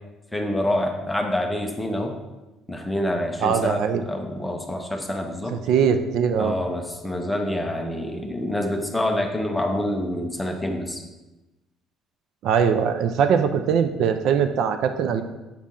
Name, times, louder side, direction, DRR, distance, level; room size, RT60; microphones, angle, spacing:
voice 1, 0.3-2.2 2.7-5.6 6.4-11.0, left 1 dB, 5° left, 3 dB, 0.6 m, -26 dB
voice 2, 3.4-4.0 5.5-6.5 12.4-15.2, right 7 dB, 55° right, 9 dB, 0.4 m, -21 dB
7.3 x 4.2 x 3.8 m, 1.1 s
cardioid pair, 170°, 0 cm